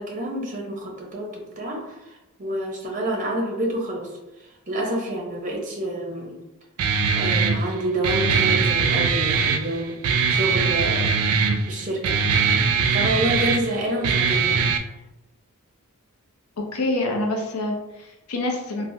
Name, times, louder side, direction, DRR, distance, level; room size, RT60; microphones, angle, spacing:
voice 1, 0.0-4.1 4.7-6.4 7.2-10.0 10.3-11.2 11.7-12.2 12.6-14.6, right 1 dB, 35° right, -1 dB, 0.6 m, -28 dB
Guitar, 6.8-14.8, right 5 dB, 70° right, 0.3 m, -21 dB
voice 2, 16.6-18.9, left 2 dB, 80° left, 1 dB, 0.5 m, -26 dB
3.3 x 2.1 x 2.6 m, 0.97 s
head